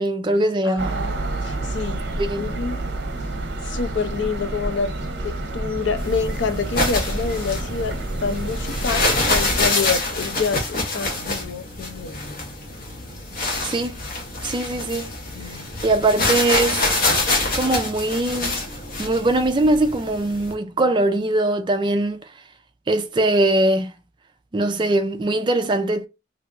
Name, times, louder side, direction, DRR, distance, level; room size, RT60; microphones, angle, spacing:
voice 1, 0.0-1.0 2.2-2.4 13.6-14.0 14.4-15.1 15.8-16.8 17.5-18.6 19.0-22.3 22.9-23.9 24.5-26.1, right 2 dB, 25° right, 0.3 m, -21 dB
voice 2, 0.6-2.1 2.4-2.8 3.6-4.9 5.2-12.5 15.3-15.7 16.2-16.4, left 5 dB, 65° left, 0.5 m, -27 dB
sound 1, 0.8-9.7, right 2 dB, 60° right, 0.7 m, -28 dB
sound 2, 6.0-20.5, left 2 dB, 45° left, 1.0 m, -26 dB
3.4 x 2.7 x 2.4 m
head